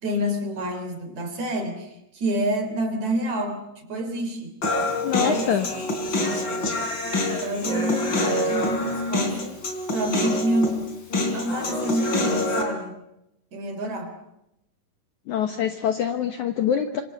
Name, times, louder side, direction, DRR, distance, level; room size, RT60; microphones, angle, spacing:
voice 1, 0.0-4.5 5.1-6.8 7.3-9.6 9.9-10.8 11.2-12.9 13.5-14.1, right 1 dB, 45° right, 6 dB, 4.7 m, -28 dB
Human voice, 4.6-12.6, left 2 dB, 30° left, 4.1 m, -26 dB
voice 2, 5.0-5.7 15.3-17.0, left 8 dB, 65° left, 8 dB, 2.0 m, -24 dB
27.0 x 25.0 x 7.9 m, 0.85 s
omnidirectional pair, 4.6 m